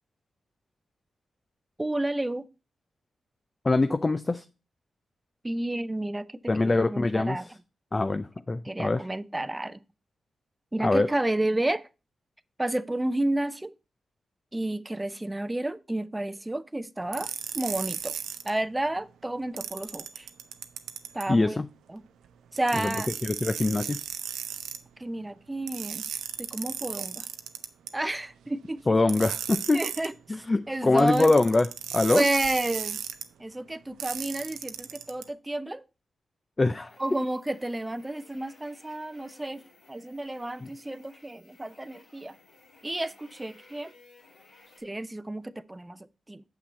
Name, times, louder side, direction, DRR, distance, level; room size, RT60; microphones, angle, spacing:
voice 1, 1.8-2.5 5.4-7.4 8.6-9.8 10.7-11.9 12.6-13.7 14.5-18.2 18.4-20.3 21.1-21.6 21.9-22.0 22.5-23.1 25.0-26.1 26.4-27.3 27.9-28.9 29.7-31.3 32.1-33.0 33.4-35.8 37.0-39.6 39.9-42.4 42.8-43.9 44.8-46.4, right 1 dB, 20° right, 0.6 m, -31 dB
voice 2, 3.6-4.4 6.5-7.5 7.9-9.1 10.8-11.1 21.3-21.7 22.7-23.0 23.2-24.0 28.9-29.8 30.3-31.7 31.9-32.2 36.6-37.0 40.6-40.7, left 2 dB, 35° left, 0.5 m, -24 dB
sound 1, 17.1-18.5 19.6-21.3 22.6-24.8 25.7-27.9 29.1-30.1 31.0-33.2 34.0-35.2, right 9 dB, 85° right, 0.5 m, -35 dB
sound 2, 36.9-44.8, left 3 dB, 75° left, 2.7 m, -57 dB
7.0 x 5.9 x 4.2 m
supercardioid pair, 40°, 0 cm